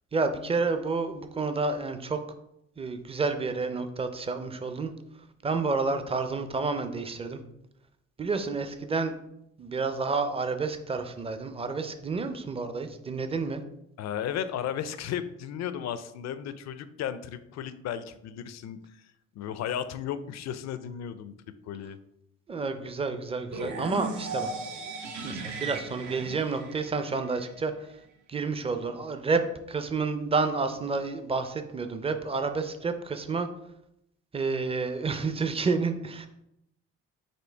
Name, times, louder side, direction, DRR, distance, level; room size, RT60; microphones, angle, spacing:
voice 1, 0.1-2.2 2.8-4.9 5.4-7.4 8.2-9.1 9.6-13.6 22.5-24.5 25.2-27.7 28.3-29.4 29.7-33.5 34.3-36.3, right 4 dB, 20° right, 8 dB, 0.5 m, -29 dB
voice 2, 14.0-18.8 19.3-21.3 21.7-22.0, left 9 dB, 60° left, 13 dB, 0.4 m, -34 dB
sound 1, 23.5-27.5, right 3 dB, 70° right, 0.8 m, -37 dB
4.4 x 2.6 x 4.4 m, 0.81 s
cardioid pair, 90°, 30 cm